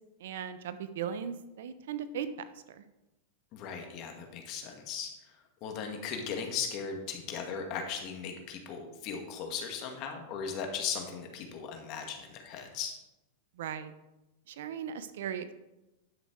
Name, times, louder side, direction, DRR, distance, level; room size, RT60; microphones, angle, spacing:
voice 1, 0.2-2.3 2.7-2.8 13.6-13.9 14.5-15.5, right 8 dB, 70° right, 12 dB, 0.8 m, -37 dB
voice 2, 3.5-12.9, left 6 dB, 50° left, 3 dB, 2.0 m, -38 dB
11.0 x 6.3 x 4.7 m, 0.98 s
hypercardioid pair, 110°, 0 cm